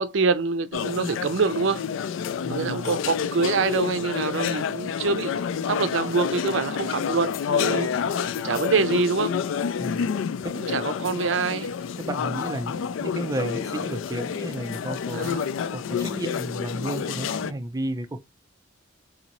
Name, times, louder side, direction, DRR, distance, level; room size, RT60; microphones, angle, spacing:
voice 1, 0.0-1.8 2.5-7.9 8.1-9.4 10.5-11.7 15.1-15.4, right 4 dB, 70° right, 0.5 m, -25 dB
sound 1, 0.7-17.5, left 7 dB, 85° left, 0.3 m, -29 dB
voice 2, 2.4-3.0 9.8-10.1 10.4-10.6 12.0-18.2, right 1 dB, 20° right, 0.4 m, -33 dB
4.0 x 2.7 x 2.9 m
head